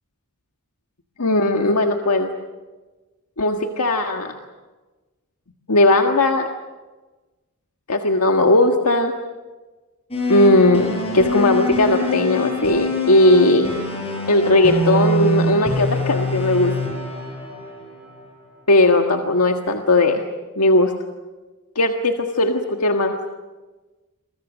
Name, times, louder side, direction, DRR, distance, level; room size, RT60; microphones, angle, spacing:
voice 1, 1.2-2.3 3.4-4.3 5.7-6.5 7.9-9.1 10.3-13.7 14.3-16.7 18.7-20.2 20.6-20.9 21.7-23.1, left 2 dB, 90° left, 3 dB, 1.6 m, -17 dB
sound 1, 10.1-18.3, left 1 dB, 25° left, 8.0 m, -24 dB
28.5 x 24.0 x 6.4 m, 1.2 s
head